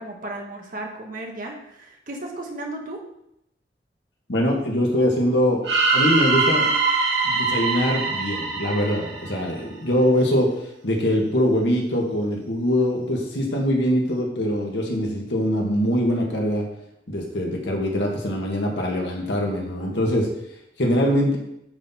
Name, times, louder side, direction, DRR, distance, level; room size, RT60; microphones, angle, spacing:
voice 1, 0.0-3.0, right 1 dB, 50° right, 0 dB, 1.5 m, -34 dB
voice 2, 4.3-5.6 5.9-6.7 7.2-10.5 10.8-16.7 17.1-20.3 20.8-21.4, equal, 90° left, 0 dB, 1.7 m, -23 dB
sound 1, 5.6-9.7, right 4 dB, 85° right, 1.8 m, -22 dB
9.8 x 4.0 x 4.4 m, 0.77 s
head